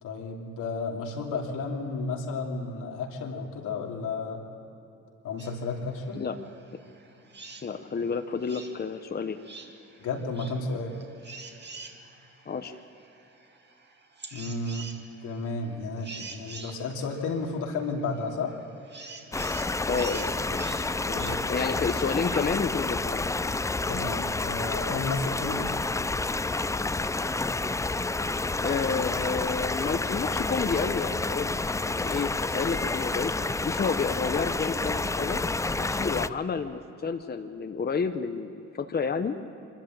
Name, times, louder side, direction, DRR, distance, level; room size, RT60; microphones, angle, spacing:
voice 1, 0.0-4.4 5.2-6.2 10.0-10.9 14.3-14.9 15.2-18.6 21.1-21.3 23.9-25.7, left 3 dB, 85° left, 0 dB, 2.9 m, -32 dB
sound 1, 5.4-21.3, right 4 dB, 35° right, 2.1 m, -47 dB
voice 2, 7.6-9.4 12.5-12.8 19.9-23.2 28.6-31.5 31.9-33.3 33.6-35.4 35.8-39.4, left 5 dB, 30° left, 7 dB, 1.0 m, -30 dB
sound 2, 19.3-36.3, left 3 dB, 10° left, 0.4 m, -29 dB
24.5 x 13.5 x 8.9 m, 3.0 s
cardioid pair, 90°, 30 cm